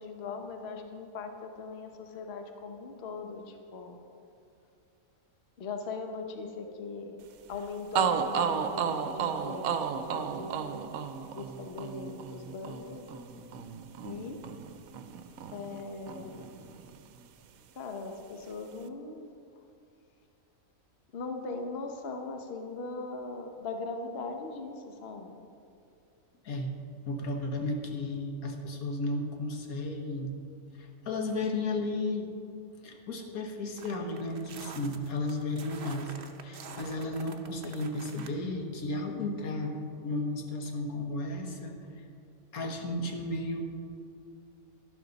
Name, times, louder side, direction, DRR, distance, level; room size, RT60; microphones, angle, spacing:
voice 1, 0.0-4.0 5.6-10.7 11.3-13.0 14.0-14.4 15.5-16.6 17.7-19.3 21.1-25.4, left 4 dB, 50° left, 4 dB, 1.0 m, -40 dB
sound 1, 7.5-7.6 7.9-17.2, right 7 dB, 75° right, 1.0 m, -33 dB
voice 2, 27.1-30.3 30.7-32.3 32.8-36.1 36.4-41.7 42.5-43.7, left 2 dB, 80° left, 3 dB, 1.6 m, -34 dB
sound 2, 33.8-38.3, right 5 dB, 50° right, 0.8 m, -47 dB
12.0 x 12.0 x 4.0 m, 2.5 s
omnidirectional pair, 1.5 m